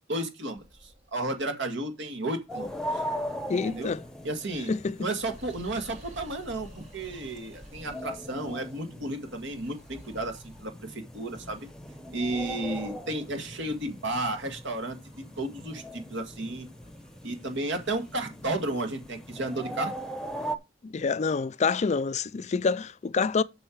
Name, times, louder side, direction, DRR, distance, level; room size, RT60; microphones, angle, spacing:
voice 1, 0.1-3.0 3.6-3.9 4.2-4.7 5.0-11.7 12.1-15.0 15.4-16.7 17.2-19.9, right 2 dB, 65° right, 2.1 m, -33 dB
sound 1, 0.6-20.2, right 1 dB, 40° right, 4.2 m, -55 dB
sound 2, 2.5-20.6, equal, 5° left, 0.9 m, -40 dB
voice 2, 3.5-4.0 4.7-5.0 20.8-23.4, left 5 dB, 35° left, 0.4 m, -27 dB
8.0 x 6.6 x 4.6 m
head